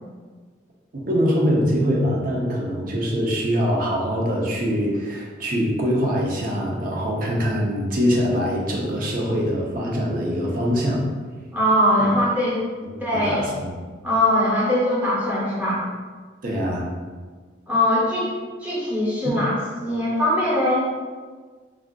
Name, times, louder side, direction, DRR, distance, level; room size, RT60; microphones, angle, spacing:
voice 1, 0.9-11.0 12.8-13.7 16.4-16.8 19.2-19.4, equal, 45° right, -2 dB, 0.5 m, -23 dB
voice 2, 11.5-12.7 13.0-13.4 14.0-15.8 17.7-18.3 18.6-19.5 19.8-20.9, left 1 dB, 10° right, -8 dB, 0.8 m, -21 dB
3.5 x 2.4 x 2.2 m, 1.5 s
head